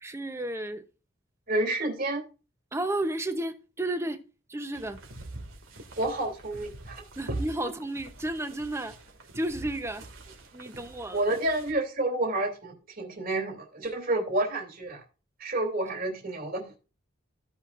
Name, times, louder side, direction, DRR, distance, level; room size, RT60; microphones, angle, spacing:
voice 1, 0.0-0.9 2.7-4.2 4.5-5.0 7.2-9.0 9.3-10.1 10.5-11.3, right 1 dB, 15° right, 0.8 m, -32 dB
voice 2, 1.5-2.2 6.0-7.0 11.1-15.0 15.4-16.7, right 2 dB, 45° right, 2.9 m, -29 dB
sound 1, 4.7-11.7, right 2 dB, 75° right, 2.2 m, -43 dB
16.0 x 5.7 x 2.5 m
head